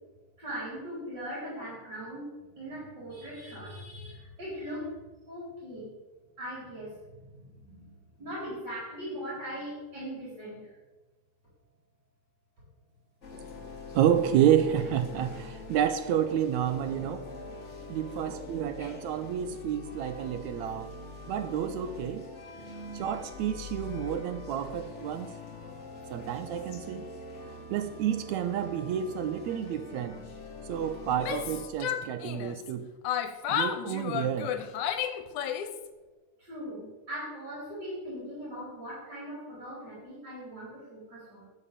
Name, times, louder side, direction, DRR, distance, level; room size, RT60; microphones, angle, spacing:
voice 1, 0.4-2.3 2.6-4.9 5.3-5.9 6.4-10.7 36.4-41.5, equal, 30° right, -7 dB, 4.5 m, -40 dB
sound 1, 13.2-31.7, left 3 dB, 60° left, 0.7 m, -44 dB
voice 2, 13.9-17.3 17.9-20.9 21.3-22.2 22.9-25.3 26.1-27.1 27.7-30.2 30.7-32.9 33.5-34.5, right 9 dB, 75° right, 10 dB, 1.8 m, -29 dB
Yell, 31.1-32.7 33.0-35.9, left 9 dB, 75° left, 2.2 m, -32 dB
12.5 x 5.6 x 8.4 m, 1.2 s
omnidirectional pair, 3.7 m